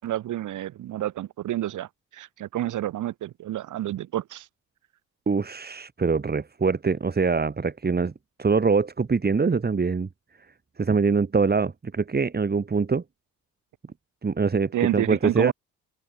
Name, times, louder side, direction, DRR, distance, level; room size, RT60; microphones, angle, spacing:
voice 1, 0.0-4.5 14.7-15.5, right 13 dB, 80° right, 7.0 m, -29 dB
voice 2, 5.3-8.1 8.4-10.1 10.8-13.0 14.2-15.5, right 4 dB, 30° right, 6.5 m, -23 dB
open air
cardioid pair, 90°, 30 cm